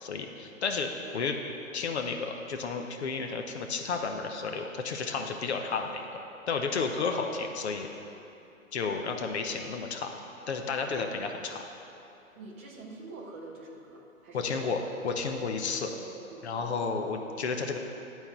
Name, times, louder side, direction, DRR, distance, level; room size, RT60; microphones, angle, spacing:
voice 1, 0.0-1.4 1.7-6.1 6.5-7.9 8.7-10.1 10.5-11.6 14.3-15.9 16.4-17.8, left 4 dB, 50° left, 4 dB, 0.8 m, -32 dB
voice 2, 7.1-7.5 10.9-11.2 12.3-14.6 15.8-16.9, right 3 dB, 10° right, -3 dB, 0.4 m, -46 dB
11.0 x 4.5 x 6.8 m, 2.8 s
figure-of-eight pair, 125°, 41 cm